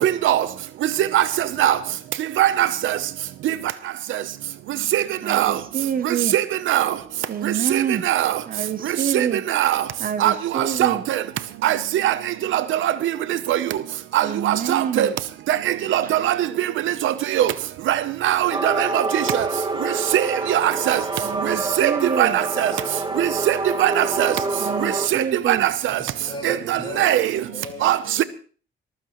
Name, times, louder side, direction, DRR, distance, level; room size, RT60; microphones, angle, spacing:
voice 1, 0.0-0.4 1.1-1.2 1.6-1.8 2.4-2.7 4.9-5.0 5.3-5.5 6.3-6.9 8.1-8.3 9.1-9.8 10.2-10.3 10.8-10.9 11.6-11.8 12.0-12.1 12.5-12.9 13.5-13.6 14.1-15.1 15.5-15.6 15.9-16.3 17.0-17.5 17.9-18.0 18.2-19.2 20.1-20.2 20.5-21.0 21.8-21.9 22.2-22.7 23.2-24.3 25.1-25.7 26.4-27.3 27.8-28.2, right 12 dB, 80° right, 0.8 m, -20 dB
voice 2, 5.2-6.4 7.3-8.0 8.5-9.4 10.0-11.0 14.2-15.1 16.0-16.1 21.2-22.4 24.6-25.7, right 8 dB, 45° right, 0.8 m, -27 dB
sound 1, 18.5-25.1, right 2 dB, 20° right, 1.9 m, -27 dB
voice 3, 25.9-27.9, left 2 dB, 25° left, 5.6 m, -36 dB
21.5 x 14.5 x 3.1 m
cardioid pair, 90°, 20 cm